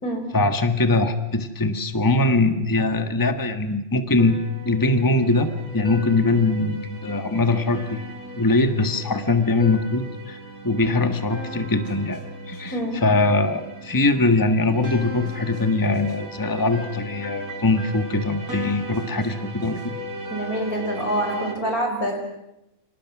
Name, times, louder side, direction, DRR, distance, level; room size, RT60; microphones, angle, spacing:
voice 1, 0.3-8.0 8.4-10.4 10.6-12.2 12.5-19.9, left 2 dB, 15° left, 7 dB, 1.5 m, -22 dB
sound 1, 4.2-21.5, equal, 90° right, 4.7 m, -37 dB
voice 2, 20.3-22.2, equal, 85° left, 3 dB, 6.0 m, -26 dB
29.5 x 26.5 x 6.1 m, 0.90 s
omnidirectional pair, 1.5 m